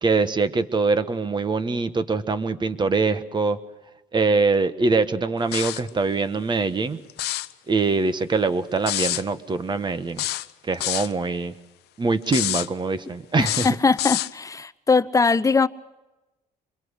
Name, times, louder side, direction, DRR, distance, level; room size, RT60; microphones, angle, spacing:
voice 1, 0.0-3.6 4.1-7.0 7.7-10.2 10.7-11.5 12.0-13.7, right 3 dB, 25° right, 12 dB, 1.4 m, -23 dB
sound 1, 5.5-5.9 7.1-7.5 8.9-9.2 10.2-11.1 12.3-12.7 13.4-14.3, left 16 dB, 75° left, 0.8 m, -27 dB
voice 2, 13.4-15.7, left 4 dB, 20° left, 13 dB, 0.8 m, -21 dB
25.5 x 22.5 x 6.5 m, 1.1 s
cardioid pair, 110°, 17 cm